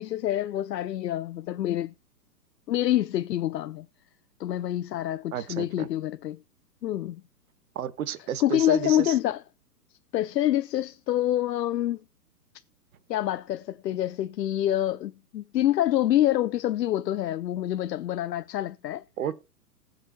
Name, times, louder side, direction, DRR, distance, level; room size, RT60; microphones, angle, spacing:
voice 1, 0.0-1.9 2.7-3.9 4.4-6.4 6.8-7.2 8.4-9.4 10.1-12.0 13.1-19.0, left 13 dB, 80° left, 0.6 m, -26 dB
voice 2, 5.3-5.9 7.7-9.2 19.2-19.3, right 9 dB, 60° right, 1.1 m, -32 dB
20.0 x 6.7 x 2.2 m
hypercardioid pair, 135°, 48 cm